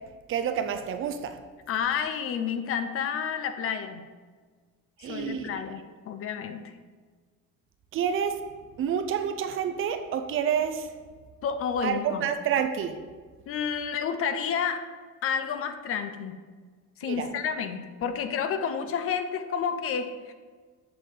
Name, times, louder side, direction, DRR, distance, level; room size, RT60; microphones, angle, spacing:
voice 1, 0.3-1.4 5.0-5.6 7.9-8.4 8.8-10.9 11.8-13.0 17.1-17.3, right 8 dB, 40° right, 8 dB, 0.4 m, -28 dB
voice 2, 1.7-4.0 5.1-6.7 11.4-12.3 13.5-14.8 15.2-16.4 17.0-20.3, left 7 dB, 45° left, 9 dB, 0.6 m, -30 dB
7.8 x 6.6 x 3.7 m, 1.5 s
cardioid pair, 170°, 32 cm